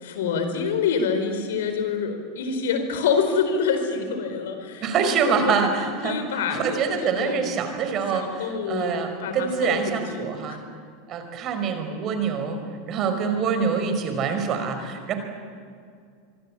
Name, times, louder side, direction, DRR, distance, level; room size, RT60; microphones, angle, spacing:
voice 1, 0.0-5.6 6.0-7.5 8.1-10.6, left 5 dB, 70° left, 7 dB, 4.2 m, -27 dB
voice 2, 4.8-10.6 11.1-12.6 12.9-15.1, right 6 dB, 40° right, 7 dB, 5.0 m, -25 dB
25.5 x 24.0 x 8.8 m, 2.2 s
figure-of-eight pair, 85°, 0 cm